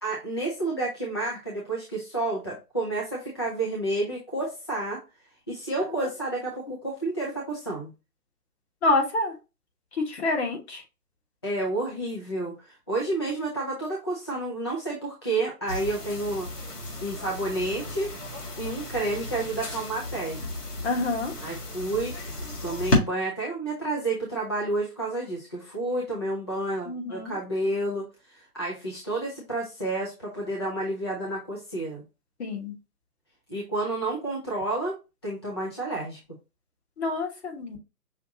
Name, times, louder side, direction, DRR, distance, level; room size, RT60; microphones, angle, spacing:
voice 1, 0.0-5.0 5.5-7.9 11.4-16.5 17.0-18.1 18.6-20.4 21.4-32.0 33.5-35.0 35.2-36.2, right 2 dB, 20° left, -4 dB, 0.4 m, -30 dB
voice 2, 8.8-9.3 9.9-10.8 20.8-21.3 26.8-27.4 32.4-32.7 37.0-37.8, left 2 dB, 45° left, 2 dB, 1.4 m, -27 dB
sound 1, 15.7-23.0, left 1 dB, 80° left, 1.9 m, -32 dB
5.7 x 2.5 x 2.7 m, 0.27 s
figure-of-eight pair, 135°, 46 cm